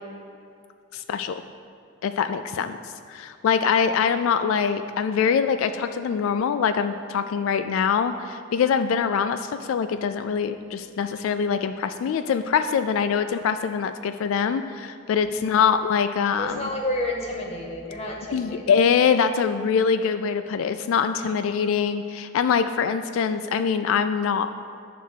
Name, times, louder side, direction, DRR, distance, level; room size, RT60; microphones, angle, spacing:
voice 1, 0.9-1.4 2.0-2.8 3.1-16.7 18.3-24.5, left 6 dB, 90° left, 9 dB, 0.3 m, -23 dB
voice 2, 15.2-15.6 16.4-18.8, left 1 dB, 30° left, 0 dB, 1.0 m, -31 dB
10.0 x 3.4 x 6.4 m, 2.4 s
head